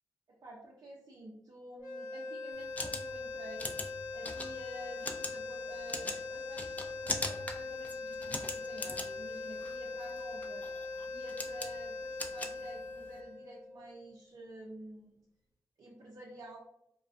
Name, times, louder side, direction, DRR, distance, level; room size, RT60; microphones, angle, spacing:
voice 1, 0.4-3.7 4.1-10.8 11.1-15.2 15.8-16.6, right 1 dB, 65° right, -3 dB, 0.6 m, -50 dB
sound 1, 1.8-14.0, left 3 dB, 65° left, 1.1 m, -41 dB
sound 2, 2.5-13.2, left 2 dB, 25° left, 0.4 m, -41 dB
2.4 x 2.2 x 2.4 m, 0.77 s
cardioid pair, 60°, 7 cm